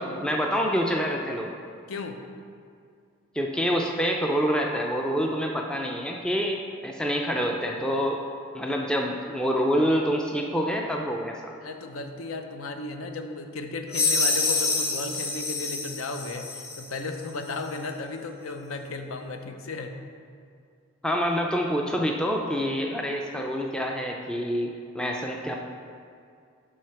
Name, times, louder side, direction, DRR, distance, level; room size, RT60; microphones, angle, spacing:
voice 1, 0.0-1.5 3.3-8.2 8.5-11.5 21.0-25.5, equal, 5° left, 1 dB, 0.3 m, -27 dB
voice 2, 11.6-20.0, left 3 dB, 85° left, 5 dB, 0.6 m, -35 dB
sound 1, 13.9-16.9, left 3 dB, 50° left, 0.8 m, -27 dB
6.3 x 4.0 x 5.7 m, 2.3 s
head